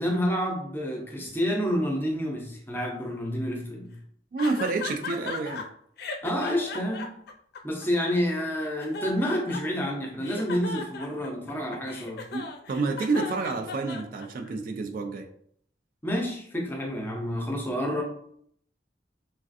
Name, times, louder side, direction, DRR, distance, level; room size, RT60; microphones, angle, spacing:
voice 1, 0.0-3.9 6.2-7.1 7.6-12.2 16.0-18.0, equal, 10° left, 0 dB, 0.6 m, -29 dB
voice 2, 4.3-5.6 12.3-15.3, right 3 dB, 50° right, 4 dB, 0.3 m, -29 dB
sound 1, 4.4-5.6 6.0-8.1 8.6-9.9 10.2-14.5, left 4 dB, 60° left, 0.4 m, -36 dB
3.2 x 2.4 x 2.5 m, 0.66 s
head